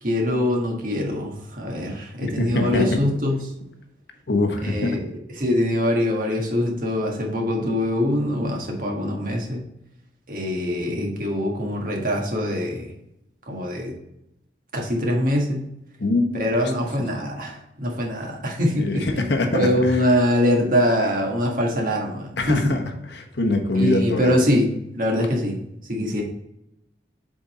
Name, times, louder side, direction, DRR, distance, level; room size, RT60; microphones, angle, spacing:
voice 1, 0.0-3.4 4.6-5.1 5.4-9.6 10.3-12.9 13.5-14.0 14.7-15.7 16.3-19.0 19.5-22.8 23.8-26.2, left 1 dB, 50° right, 0 dB, 1.5 m, -23 dB
voice 2, 2.4-3.0 4.3-5.0 9.0-9.1 16.0-16.7 18.8-20.0 22.4-24.4, left 2 dB, 70° left, 4 dB, 1.0 m, -24 dB
7.6 x 3.9 x 4.2 m, 0.82 s
head